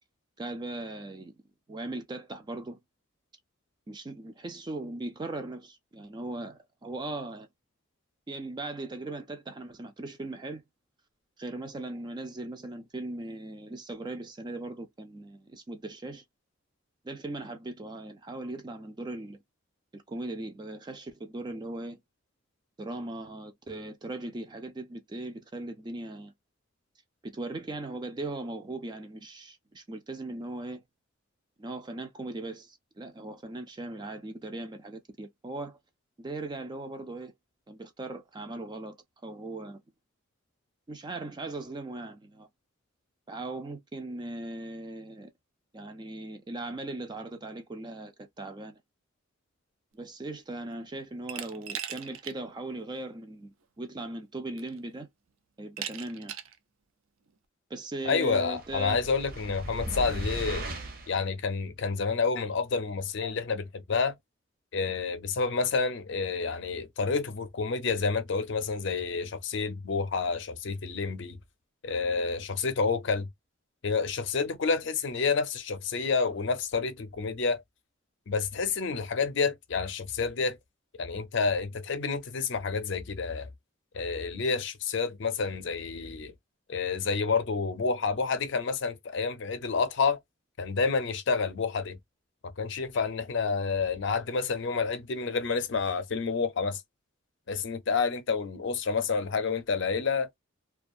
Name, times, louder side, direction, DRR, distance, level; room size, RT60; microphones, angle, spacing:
voice 1, 0.4-1.3 1.7-2.8 3.9-7.5 8.3-10.6 11.4-16.2 17.0-19.4 19.9-22.0 22.8-26.3 27.2-30.8 31.6-35.8 36.2-37.3 37.7-39.0 39.2-39.8 40.9-42.5 43.3-45.3 45.7-48.8 49.9-55.1 55.6-56.3 57.7-59.0, right 2 dB, 20° right, 0.4 m, -39 dB
Glass, 51.3-52.4 52.8-52.9 54.0-54.1 54.6-55.0 55.8-56.6, right 9 dB, 80° right, 0.5 m, -38 dB
voice 2, 58.0-60.7 61.1-64.2 64.7-71.4 71.8-73.3 73.8-77.6 78.3-80.6 81.0-83.5 83.9-86.3 86.7-90.2 90.6-92.0 92.6-96.8 97.5-100.3, left 4 dB, 60° left, 0.5 m, -29 dB
sound 1, 58.6-61.2, right 1 dB, 45° right, 0.7 m, -37 dB
2.4 x 2.3 x 2.5 m
head